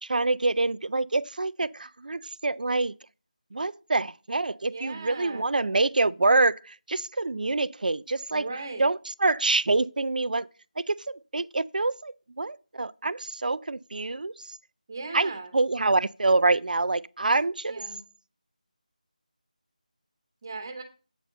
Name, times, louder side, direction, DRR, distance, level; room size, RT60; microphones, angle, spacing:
voice 1, 0.0-3.0 3.5-8.5 8.8-10.5 10.8-14.6 15.1-17.8, right 3 dB, 75° right, 0.4 m, -26 dB
voice 2, 4.6-5.5 8.3-8.9 14.9-15.5 17.7-18.0 20.4-20.8, right 3 dB, 30° right, 1.2 m, -38 dB
8.1 x 4.3 x 6.6 m
figure-of-eight pair, 175°, 5 cm